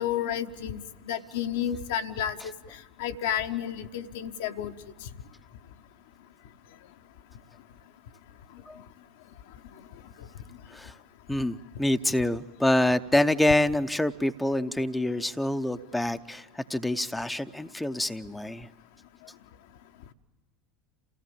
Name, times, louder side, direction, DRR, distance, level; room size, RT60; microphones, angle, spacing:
voice 1, 0.0-2.4 3.0-4.7, left 9 dB, 60° left, 7 dB, 0.9 m, -31 dB
voice 2, 11.3-18.7, left 1 dB, 5° left, 8 dB, 0.7 m, -26 dB
28.5 x 16.5 x 8.7 m, 1.3 s
figure-of-eight pair, 75°, 0 cm